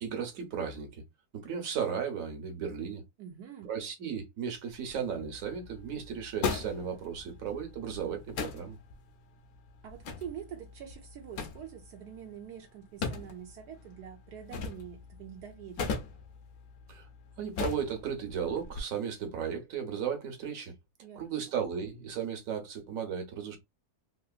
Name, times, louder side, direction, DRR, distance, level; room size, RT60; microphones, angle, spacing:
voice 1, 0.0-1.0 1.3-3.0 3.6-8.8 16.9-17.1 17.4-20.7 21.1-23.6, right 7 dB, 60° right, 1.3 m, -35 dB
voice 2, 3.2-3.7 9.8-15.9 21.0-21.5, right 9 dB, 80° right, 1.2 m, -45 dB
sound 1, 4.7-18.8, left 4 dB, 70° left, 1.1 m, -40 dB
3.4 x 2.7 x 2.3 m
omnidirectional pair, 1.7 m